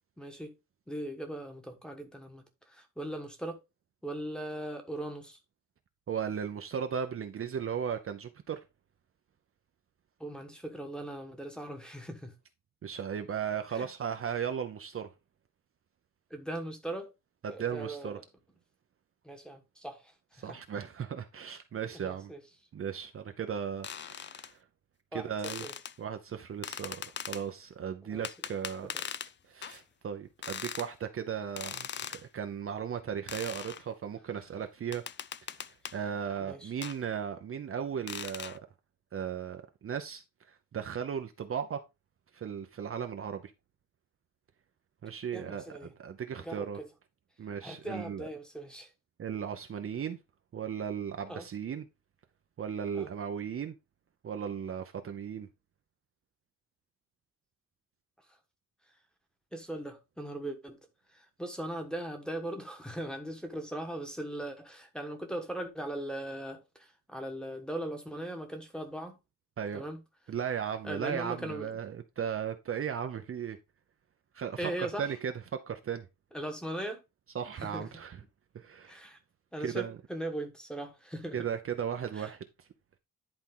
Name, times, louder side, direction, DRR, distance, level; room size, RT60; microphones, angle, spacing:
voice 1, 0.2-0.5 0.9-3.6 4.0-5.4 10.2-12.3 13.7-13.9 16.3-17.1 17.5-18.2 19.2-20.1 20.4-20.6 21.9-22.4 25.1-25.7 28.0-28.2 28.9-29.0 36.4-36.7 45.3-45.9 46.4-46.9 47.6-48.9 51.3-51.5 52.9-53.1 59.5-60.8 61.1-69.2 69.7-70.0 70.8-71.7 74.6-75.1 76.3-77.0 77.5-77.9 78.8-79.2 79.5-81.5 82.1-82.3, right 1 dB, 5° left, 1.3 m, -39 dB
voice 2, 6.1-8.6 12.8-15.1 17.4-18.2 20.4-22.3 22.7-24.6 25.1-25.6 26.0-28.9 29.5-35.0 35.4-38.5 39.1-40.2 40.5-41.8 42.3-43.5 45.0-46.8 47.4-48.3 49.2-50.2 50.5-51.9 52.6-53.8 54.2-55.5 69.6-69.8 70.3-73.6 74.3-76.1 77.3-78.2 78.5-79.0 79.6-80.0 81.3-82.7, right 8 dB, 45° right, 0.7 m, -36 dB
sound 1, 23.8-24.5 25.4-25.9 26.6-27.4 28.2-29.3 29.6-29.8 30.4-30.9 31.6-32.2 33.3-33.8 34.9-36.0 36.8-37.0 38.1-38.6, left 8 dB, 35° left, 0.4 m, -40 dB
10.5 x 4.4 x 3.8 m
wide cardioid pair, 170°, 32 cm